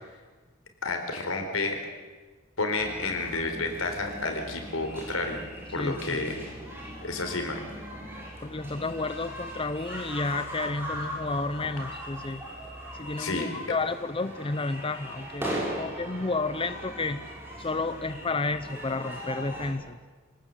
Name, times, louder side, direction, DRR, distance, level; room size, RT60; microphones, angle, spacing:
voice 1, 0.8-1.8 2.6-5.5 5.7-6.3 7.0-7.6 13.2-13.5, left 3 dB, 85° left, 4 dB, 4.5 m, -30 dB
sound 1, 2.7-19.7, equal, 10° right, 6.1 m, -39 dB
voice 2, 5.7-6.3 8.4-12.4 12.9-17.3 17.6-20.0, left 3 dB, 25° left, 12 dB, 0.7 m, -31 dB
25.5 x 18.5 x 8.1 m, 1.4 s
head